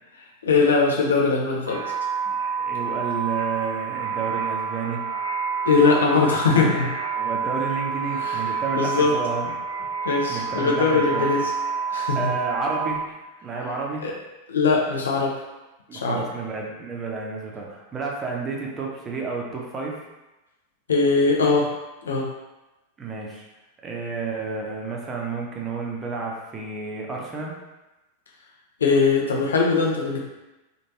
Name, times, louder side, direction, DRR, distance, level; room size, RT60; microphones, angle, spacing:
voice 1, 0.4-1.8 5.6-6.9 8.2-8.3 8.8-9.1 10.0-11.5 11.9-12.3 14.0-14.1 14.5-15.3 15.9-16.2 20.9-21.7 22.1-22.3 28.8-30.3, left 4 dB, 70° left, -1 dB, 0.6 m, -20 dB
sound 1, 1.7-12.9, right 6 dB, 70° right, 0.8 m, -28 dB
voice 2, 2.6-5.0 7.1-9.4 10.3-11.3 12.1-13.0 13.4-14.0 15.9-20.0 23.0-23.5 23.8-27.6, right 4 dB, 25° right, -1 dB, 0.6 m, -31 dB
3.1 x 2.5 x 2.8 m, 1.1 s
figure-of-eight pair, 90°, 0 cm